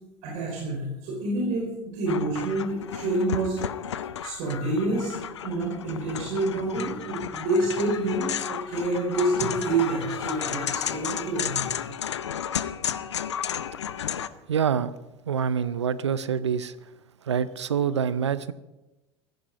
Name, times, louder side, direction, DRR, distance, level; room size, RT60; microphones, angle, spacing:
voice 1, 0.2-3.6 4.2-5.1 5.4-11.6, right 2 dB, 55° right, -3 dB, 5.1 m, -27 dB
sound 1, 2.1-14.3, left 9 dB, 75° left, 0.7 m, -33 dB
voice 2, 14.5-14.9 15.3-16.7 17.3-18.5, right 7 dB, 80° right, 17 dB, 0.6 m, -26 dB
16.0 x 14.5 x 5.2 m, 1.1 s
figure-of-eight pair, 75°, 15 cm